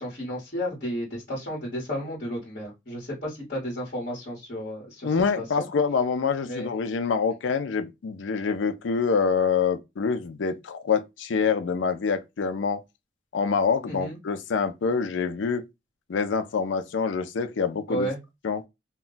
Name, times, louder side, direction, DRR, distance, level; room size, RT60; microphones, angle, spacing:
voice 1, 0.0-5.7 6.4-6.7 13.9-14.2 17.9-18.2, equal, 50° left, 1.1 m, -33 dB
voice 2, 5.0-12.8 13.3-15.6 16.1-18.1 18.4-18.6, left 5 dB, 80° left, 0.4 m, -26 dB
2.2 x 2.1 x 3.8 m
head